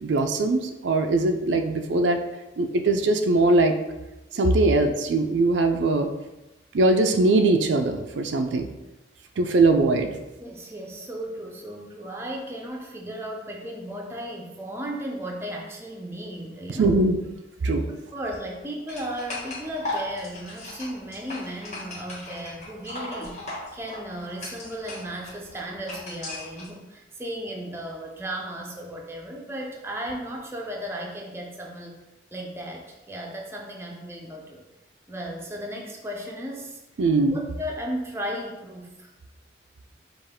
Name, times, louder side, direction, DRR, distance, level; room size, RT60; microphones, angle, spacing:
voice 1, 0.0-2.2 2.6-3.8 4.3-6.1 6.7-8.7 9.4-10.1 16.8-17.2 17.6-17.9 37.0-37.4, right 2 dB, 85° right, 6 dB, 0.4 m, -21 dB
voice 2, 10.4-16.9 17.9-23.4 23.7-32.0 32.3-34.6 35.1-36.8 37.3-39.1, equal, 15° right, 0 dB, 0.5 m, -35 dB
sound 1, 18.9-26.7, left 2 dB, 40° left, 1.2 m, -37 dB
5.4 x 2.5 x 3.6 m, 1.0 s
head